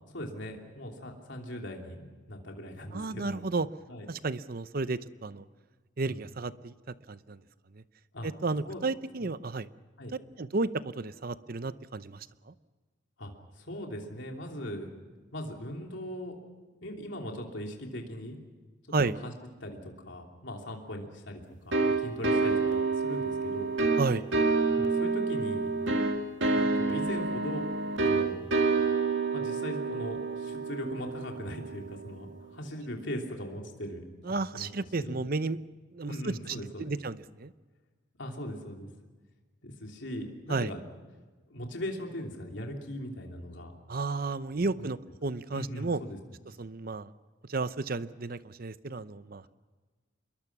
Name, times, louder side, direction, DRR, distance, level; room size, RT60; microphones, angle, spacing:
voice 1, 0.1-3.4 3.9-4.1 6.0-6.2 8.1-8.3 8.7-8.8 9.2-9.3 10.0-10.1 13.2-13.3 13.6-14.9 15.3-16.3 16.8-18.4 19.0-19.3 19.6-23.7 24.7-25.7 26.5-27.7 28.0-28.5 29.3-34.0 34.3-34.7 35.0-35.3 36.0-36.9 38.2-38.9 39.6-40.8 41.5-43.7 44.6-44.8 45.5-46.2, equal, 65° left, 1 dB, 3.1 m, -39 dB
voice 2, 2.9-3.7 4.1-5.4 6.0-6.7 7.1-7.4 7.7-7.8 8.2-9.7 10.4-12.5 18.9-19.2 24.0-24.3 34.2-35.6 35.9-37.5 40.5-40.7 43.9-46.0 46.6-47.1 47.5-49.5, right 3 dB, 50° right, 14 dB, 0.7 m, -32 dB
sound 1, 21.7-32.2, right 3 dB, 70° right, 2.0 m, -28 dB
26.5 x 22.0 x 6.1 m, 1.3 s
head